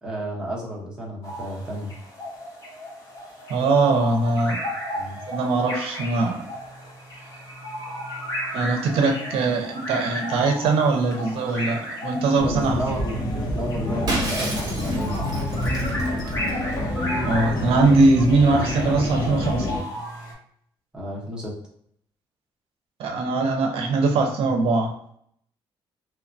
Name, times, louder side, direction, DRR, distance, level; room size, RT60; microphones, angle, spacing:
voice 1, 0.0-1.9 5.0-5.2 12.7-15.2 20.9-21.5, right 1 dB, 10° right, -4 dB, 0.8 m, -32 dB
sound 1, 1.2-20.3, equal, 30° left, 1.0 m, -34 dB
voice 2, 3.5-4.6 5.3-6.5 8.5-12.8 17.3-19.7 23.0-25.0, right 3 dB, 85° right, 3 dB, 0.5 m, -21 dB
sound 2, 12.4-19.8, left 1 dB, 50° left, 0.6 m, -27 dB
Shatter, 14.1-16.8, right 1 dB, 45° right, 0.7 m, -31 dB
3.0 x 2.1 x 2.5 m, 0.67 s
cardioid pair, 150°, 9 cm